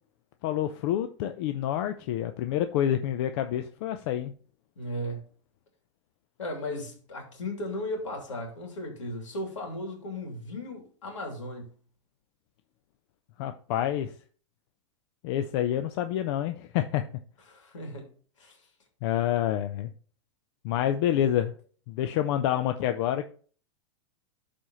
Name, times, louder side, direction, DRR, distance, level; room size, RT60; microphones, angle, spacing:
voice 1, 0.4-4.3 13.4-14.1 15.2-17.0 19.0-19.9 20.6-21.5 21.9-23.3, left 11 dB, 60° left, 0.6 m, -28 dB
voice 2, 4.8-5.3 6.4-11.7 17.5-18.1 18.4-18.6, left 1 dB, 85° left, 2.8 m, -36 dB
12.0 x 4.3 x 3.1 m
hypercardioid pair, 110°, 16 cm